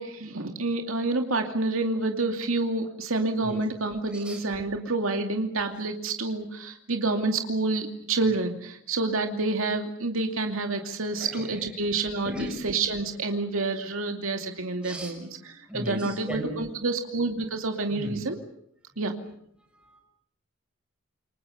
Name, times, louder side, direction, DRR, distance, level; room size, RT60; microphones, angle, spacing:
voice 1, 0.0-18.4 19.0-19.1, right 3 dB, 80° right, 4 dB, 2.5 m, -28 dB
voice 2, 11.2-11.7 12.2-12.6 14.8-15.1 15.7-16.6 17.9-18.2, equal, 5° right, 1 dB, 6.5 m, -36 dB
28.5 x 24.0 x 6.7 m, 0.67 s
head